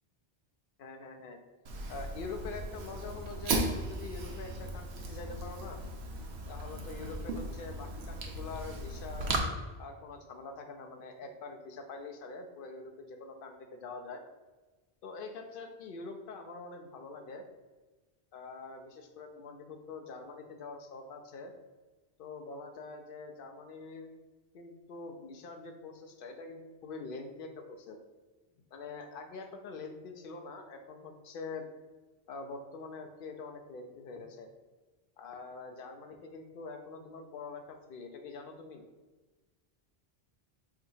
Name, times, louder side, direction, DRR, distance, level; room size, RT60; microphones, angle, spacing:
voice 1, 0.8-1.4 1.9-5.8 6.5-9.3 9.8-14.2 15.0-17.4 18.3-21.5 22.2-24.1 24.5-28.0 28.7-31.7 32.3-34.5 35.2-38.8, left 3 dB, 65° left, 4 dB, 0.7 m, -45 dB
Fire, 1.6-9.4, right 2 dB, 80° right, 0.9 m, -37 dB
4.8 x 2.8 x 2.6 m, 1.2 s
omnidirectional pair, 1.1 m